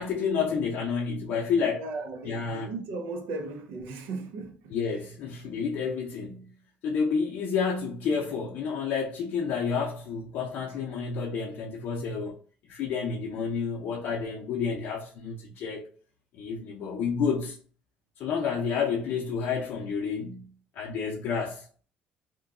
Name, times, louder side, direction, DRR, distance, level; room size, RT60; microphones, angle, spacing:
voice 1, 0.0-1.8 2.2-2.7 4.7-6.5 6.8-12.4 12.7-15.9 16.3-17.6 18.2-21.8, left 5 dB, 75° left, 0.6 m, -30 dB
voice 2, 1.6-4.8, right 3 dB, 80° right, 0.7 m, -36 dB
3.0 x 2.2 x 3.5 m
cardioid pair, 105°, 4 cm